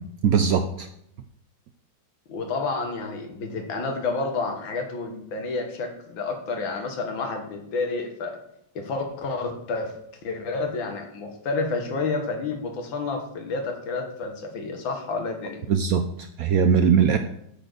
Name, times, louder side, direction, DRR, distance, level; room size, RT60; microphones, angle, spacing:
voice 1, 0.2-0.9 15.7-17.2, right 7 dB, 80° right, 7 dB, 0.8 m, -20 dB
voice 2, 2.3-8.4 8.8-9.9 10.2-15.6, left 3 dB, 80° left, 3 dB, 2.1 m, -30 dB
8.7 x 4.2 x 6.7 m, 0.75 s
omnidirectional pair, 2.1 m